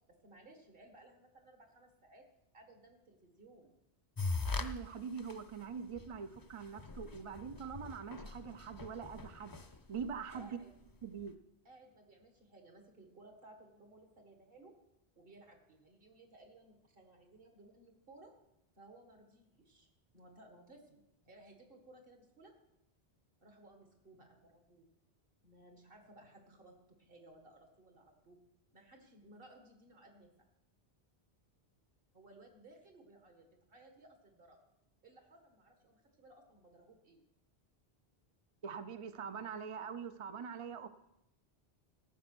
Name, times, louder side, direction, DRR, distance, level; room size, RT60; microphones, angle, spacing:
voice 1, 0.2-2.2 2.5-3.7 10.3-10.7 11.6-14.7 15.2-18.3 18.8-19.9 20.1-22.5 23.4-24.9 25.4-28.4 28.7-30.5 32.1-34.6 35.0-37.2, right 2 dB, 60° right, 3 dB, 2.1 m, -59 dB
sound 1, 4.2-4.7 5.2-5.3 6.0-6.1 6.4-6.5 6.7-10.4, left 3 dB, 25° left, 0.6 m, -40 dB
voice 2, 4.6-9.6 9.9-10.6 11.0-11.4 38.6-40.9, right 6 dB, 45° right, 10 dB, 0.4 m, -43 dB
13.5 x 7.0 x 6.1 m, 0.84 s
omnidirectional pair, 1.1 m